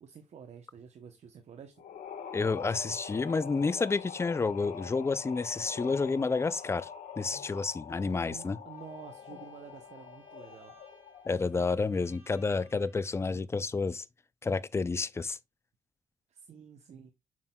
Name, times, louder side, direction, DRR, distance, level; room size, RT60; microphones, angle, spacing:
voice 1, 0.0-1.8 8.2-10.8 16.3-17.1, right 7 dB, 55° right, 0.8 m, -50 dB
sound 1, 1.8-11.5, left 7 dB, 85° left, 1.2 m, -44 dB
voice 2, 2.3-6.9 7.2-8.6 11.3-14.0 14.4-15.4, left 4 dB, 20° left, 0.4 m, -30 dB
Bowed string instrument, 8.7-13.4, right 2 dB, 20° right, 2.4 m, -62 dB
7.2 x 6.2 x 2.2 m
cardioid pair, 115°, 13 cm